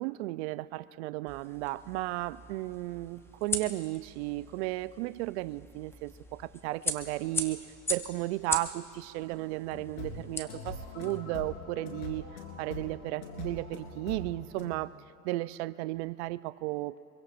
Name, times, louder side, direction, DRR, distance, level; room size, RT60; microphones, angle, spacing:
voice 1, 0.0-7.6 7.9-12.3 12.6-15.0 15.2-16.9, right 18 dB, 50° right, 15 dB, 0.5 m, -34 dB
sound 1, 1.3-11.2, left 2 dB, 5° left, 0.6 m, -40 dB
sound 2, 9.7-14.7, left 3 dB, 70° left, 3.7 m, -42 dB
24.5 x 23.0 x 2.5 m, 2.5 s
hypercardioid pair, 125°, 45 cm